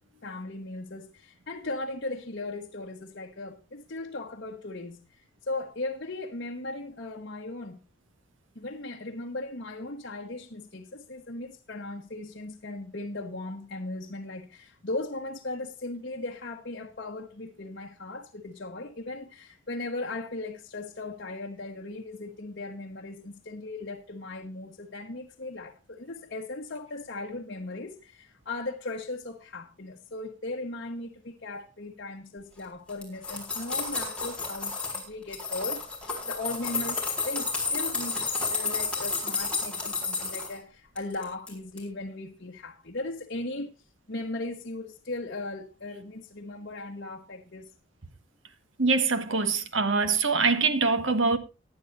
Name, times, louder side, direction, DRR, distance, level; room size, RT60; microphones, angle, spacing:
voice 1, 0.2-7.8 8.5-43.7 44.1-47.7, left 2 dB, 60° left, 1.2 m, -37 dB
sound 1, 32.9-35.0 35.3-40.5 41.0-41.5 41.8-41.9, left 4 dB, 5° left, 4.3 m, -31 dB
voice 2, 48.8-51.4, right 4 dB, 80° right, 1.5 m, -24 dB
19.0 x 10.5 x 2.6 m
head